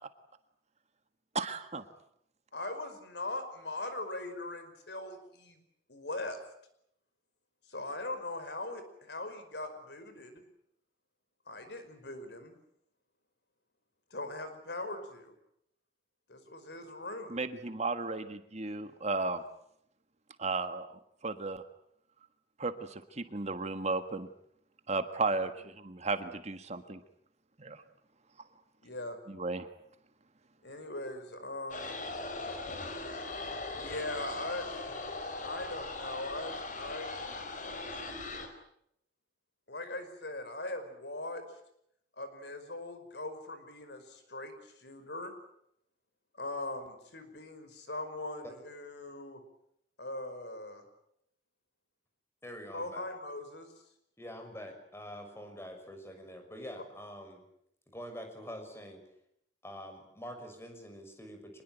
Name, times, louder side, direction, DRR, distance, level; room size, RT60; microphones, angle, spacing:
voice 1, 1.3-1.8 17.3-19.4 20.4-20.9 21.2-21.6 22.6-24.3 24.9-27.0 27.6-27.8 29.3-29.7, right 3 dB, 40° right, 9 dB, 1.6 m, -34 dB
voice 2, 2.5-5.6 5.9-6.4 7.7-10.4 11.5-12.5 14.1-15.3 16.3-17.3 28.8-29.2 30.6-31.9 33.7-37.2 39.7-41.4 42.2-45.3 46.4-49.4 50.0-50.8 52.7-53.7, left 2 dB, 65° left, 9 dB, 5.1 m, -40 dB
sound 1, 31.7-38.5, left 3 dB, 45° left, 4.6 m, -39 dB
voice 3, 52.4-53.0 54.2-57.5 57.9-59.0 59.6-61.6, equal, 15° left, 5 dB, 6.3 m, -45 dB
25.5 x 21.0 x 9.2 m, 0.73 s
head